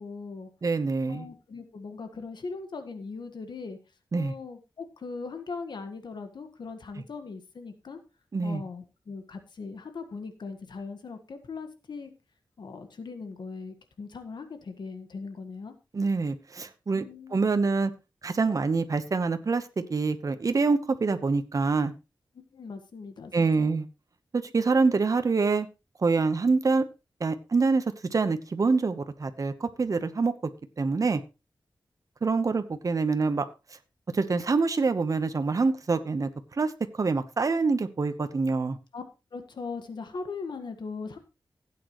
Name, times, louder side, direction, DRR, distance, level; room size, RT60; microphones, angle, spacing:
voice 1, 0.0-0.5 1.1-3.8 4.1-8.0 8.4-12.1 12.6-15.7 16.9-17.4 22.5-23.7 38.9-39.0 39.3-41.2, left 4 dB, 75° left, 7 dB, 1.6 m, -39 dB
voice 2, 0.6-1.3 4.1-4.3 8.3-8.6 15.9-17.0 17.3-17.9 18.2-21.9 23.3-23.9 24.3-25.7 26.0-26.8 27.2-27.8 28.1-30.3 30.8-31.2 32.2-33.5 34.1-36.3 36.6-38.8, right 4 dB, 50° right, 9 dB, 1.1 m, -25 dB
16.0 x 8.6 x 3.1 m, 0.28 s
wide cardioid pair, 95°, 8 cm